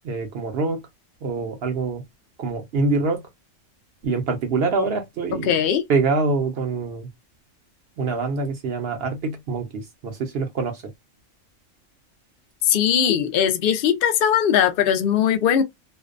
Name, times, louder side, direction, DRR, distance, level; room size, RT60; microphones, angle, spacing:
voice 1, 0.0-0.8 1.2-2.0 2.4-3.2 4.0-5.5 5.9-7.1 8.0-10.8, right 3 dB, 60° right, 0.7 m, -25 dB
voice 2, 5.3-5.8 12.6-15.6, left 9 dB, 65° left, 0.6 m, -20 dB
2.5 x 2.0 x 2.4 m
omnidirectional pair, 1.4 m